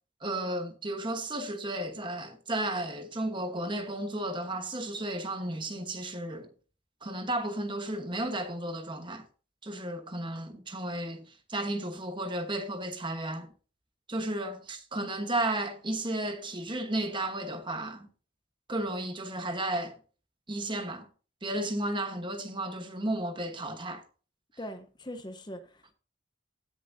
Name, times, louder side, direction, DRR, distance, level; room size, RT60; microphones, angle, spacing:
voice 1, 0.2-6.5 7.0-9.2 9.6-13.5 14.1-18.1 18.7-20.0 20.5-21.1 21.4-24.0, right 1 dB, 25° right, 1.1 m, -33 dB
voice 2, 24.6-25.9, equal, 25° left, 0.8 m, -41 dB
16.5 x 7.0 x 2.7 m
head